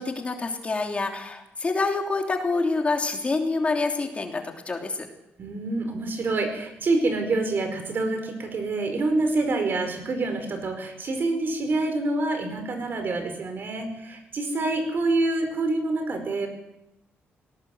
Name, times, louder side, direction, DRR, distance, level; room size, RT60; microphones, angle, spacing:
voice 1, 0.0-5.1, left 3 dB, 30° left, 3 dB, 3.0 m, -27 dB
voice 2, 5.4-16.5, right 2 dB, 50° right, 7 dB, 4.8 m, -26 dB
19.0 x 17.5 x 7.8 m, 0.88 s
cardioid pair, 105°, 5 cm